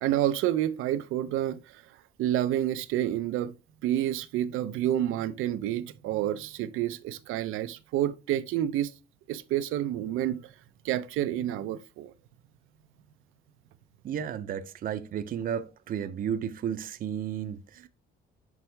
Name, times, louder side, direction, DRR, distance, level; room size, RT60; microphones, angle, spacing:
voice 1, 0.0-1.8 2.2-3.5 3.8-8.9 9.3-10.5 10.8-12.1, right 12 dB, 85° right, 0.5 m, -29 dB
voice 2, 14.0-17.9, right 8 dB, 45° right, 0.5 m, -33 dB
6.0 x 5.4 x 3.3 m
cardioid pair, 145°, 21 cm